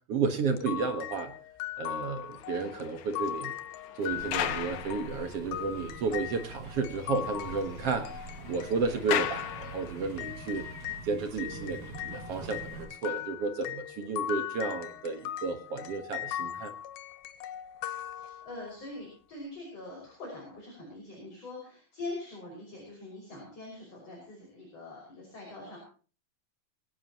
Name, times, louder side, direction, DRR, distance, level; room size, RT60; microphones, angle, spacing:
voice 1, 0.1-1.3 1.8-3.5 4.0-8.1 8.5-10.7 11.0-16.7, right 4 dB, 55° right, 7 dB, 2.0 m, -32 dB
sound 1, 0.6-11.1 11.4-18.8, left 12 dB, 90° left, 2.8 m, -39 dB
sound 2, 2.2-5.9 6.2-6.3 6.6-6.7 7.0-10.3 11.0-11.2, left 11 dB, 70° left, 2.0 m, -38 dB
sound 3, 4.1-12.8, right 3 dB, 80° right, 8.6 m, -45 dB
voice 2, 18.1-25.8, left 2 dB, 45° left, -2 dB, 6.8 m, -43 dB
22.5 x 17.5 x 3.0 m, 0.39 s
omnidirectional pair, 4.1 m